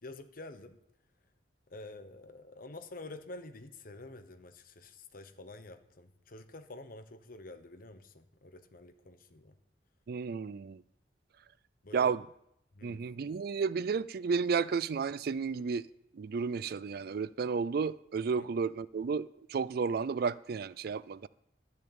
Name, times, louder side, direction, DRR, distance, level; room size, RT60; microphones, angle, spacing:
voice 1, 0.0-0.8 1.7-9.5 11.8-12.2 12.7-13.0 18.3-18.5, left 2 dB, 55° left, 1.1 m, -48 dB
voice 2, 10.1-10.8 11.9-12.2 12.8-15.9 16.1-21.3, right 5 dB, 60° right, 0.4 m, -32 dB
12.0 x 6.6 x 8.7 m
head